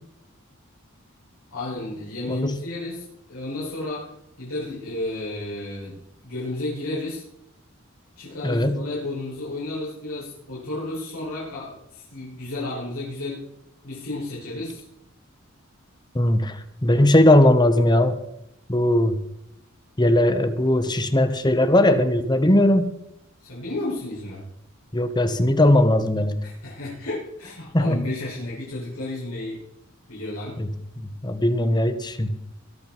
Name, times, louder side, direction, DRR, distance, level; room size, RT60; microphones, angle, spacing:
voice 1, 1.5-7.2 8.2-13.4 13.8-14.8 23.4-24.4 26.4-29.6 30.1-30.6, left 2 dB, 90° left, -8 dB, 6.7 m, -32 dB
voice 2, 8.4-8.8 16.1-18.2 18.7-19.2 20.0-22.9 24.9-26.4 27.7-28.0 30.6-30.7 31.2-32.4, left 1 dB, 20° left, 10 dB, 1.1 m, -19 dB
22.5 x 7.7 x 4.6 m, 0.80 s
head